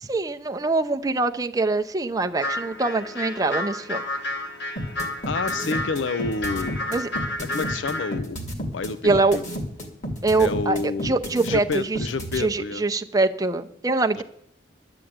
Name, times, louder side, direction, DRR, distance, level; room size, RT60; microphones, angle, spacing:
voice 1, 0.0-4.0 6.9-7.1 9.0-9.4 10.2-12.0 12.3-14.2, right 3 dB, 20° right, 7 dB, 0.6 m, -24 dB
sound 1, 2.4-8.2, left 1 dB, 60° left, 1.3 m, -31 dB
sound 2, 4.8-12.4, equal, 40° left, 2.2 m, -31 dB
voice 2, 5.3-6.8 7.5-8.4 8.7-9.5 10.4-11.2 11.4-12.8 14.2-14.3, left 4 dB, 80° left, 13 dB, 0.5 m, -29 dB
11.5 x 7.9 x 8.7 m, 0.73 s
head